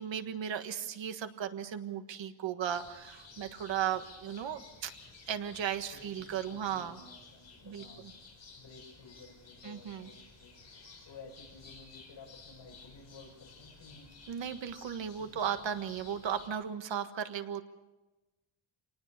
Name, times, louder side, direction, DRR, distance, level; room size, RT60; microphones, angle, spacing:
voice 1, 0.0-4.9 5.3-6.9 7.7-7.8 9.6-10.1 14.3-17.6, right 9 dB, 65° right, 9 dB, 1.6 m, -36 dB
sound 1, 2.7-16.5, left 4 dB, 30° left, 5.4 m, -54 dB
voice 2, 5.9-8.2 8.6-10.6 11.0-14.1 15.2-15.7, left 4 dB, 60° left, 1 dB, 7.0 m, -54 dB
27.0 x 19.0 x 6.7 m, 1.1 s
wide cardioid pair, 165°, 49 cm